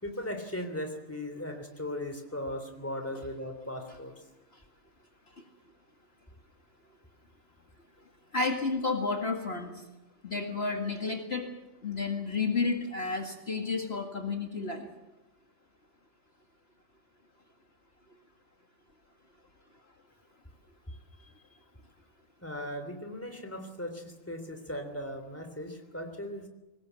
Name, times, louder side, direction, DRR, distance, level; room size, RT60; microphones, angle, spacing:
voice 1, 0.0-4.1 20.9-21.3 22.4-26.5, left 1 dB, 10° left, 6 dB, 3.2 m, -38 dB
voice 2, 8.3-9.8 10.2-11.5 11.8-14.9, left 4 dB, 50° left, 3 dB, 2.3 m, -31 dB
23.5 x 20.0 x 8.2 m, 1.0 s
omnidirectional pair, 1.4 m